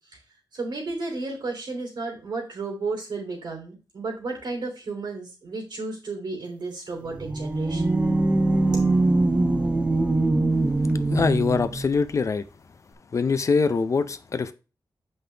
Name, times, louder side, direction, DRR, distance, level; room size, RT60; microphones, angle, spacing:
voice 1, 0.5-8.0 8.7-8.8, right 3 dB, 80° right, 3.0 m, -33 dB
sound 1, 7.1-11.9, right 2 dB, 15° right, 0.7 m, -22 dB
voice 2, 11.1-12.5 13.1-14.5, left 4 dB, 45° left, 0.5 m, -23 dB
7.7 x 5.5 x 3.3 m
wide cardioid pair, 165°, 7 cm